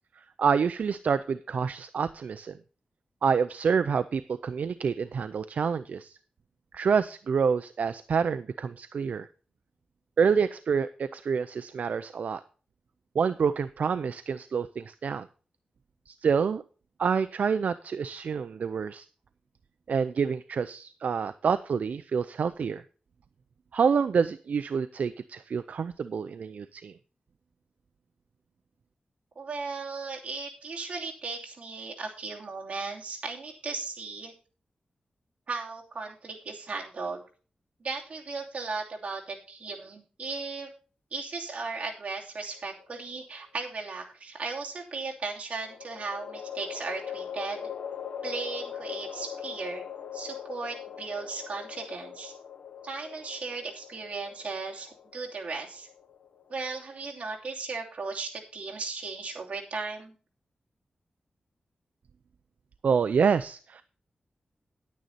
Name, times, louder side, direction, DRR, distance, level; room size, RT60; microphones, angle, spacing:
voice 1, 0.4-2.5 3.2-6.1 6.7-9.3 10.2-12.4 13.1-15.3 16.1-16.6 17.0-19.0 19.9-22.8 23.7-26.9 62.8-63.8, right 6 dB, 75° right, 12 dB, 0.5 m, -27 dB
voice 2, 29.3-34.3 35.5-37.2 37.8-40.7 41.1-47.7 48.2-49.8 50.1-52.3 52.8-55.9 56.5-60.1, right 4 dB, 55° right, -1 dB, 2.9 m, -36 dB
sound 1, 42.6-43.4 45.6-56.9, left 8 dB, 90° left, 1.3 m, -41 dB
10.5 x 9.5 x 4.1 m, 0.37 s
wide cardioid pair, 115°, 3 cm